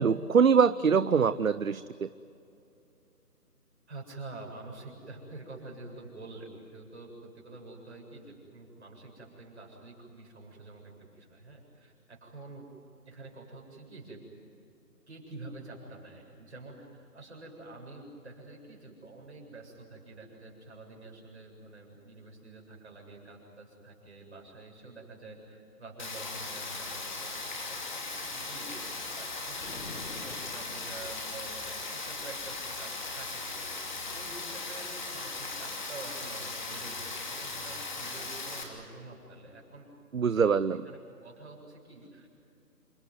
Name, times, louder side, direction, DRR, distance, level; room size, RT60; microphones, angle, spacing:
voice 1, 0.0-1.8 40.1-40.9, right 6 dB, 60° right, 15 dB, 0.7 m, -23 dB
voice 2, 3.9-12.7 13.0-14.2 15.1-39.9 40.7-42.3, right 2 dB, 45° right, 0 dB, 7.7 m, -47 dB
Rain, 26.0-38.6, left 3 dB, 30° left, 2.9 m, -38 dB
sound 1, 29.5-31.2, left 4 dB, 50° left, 1.3 m, -46 dB
28.5 x 19.0 x 9.5 m, 2.6 s
figure-of-eight pair, 170°, 47 cm